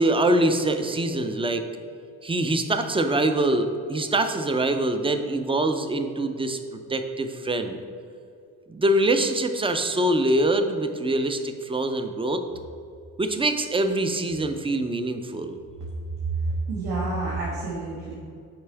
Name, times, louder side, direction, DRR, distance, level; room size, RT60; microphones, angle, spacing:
voice 1, 0.0-1.6 2.2-7.8 8.7-12.4 13.2-15.6, right 1 dB, 15° right, 7 dB, 0.5 m, -24 dB
voice 2, 16.7-18.1, right 2 dB, 70° right, -6 dB, 1.3 m, -29 dB
6.8 x 4.3 x 3.4 m, 2.4 s
supercardioid pair, 65°, 38 cm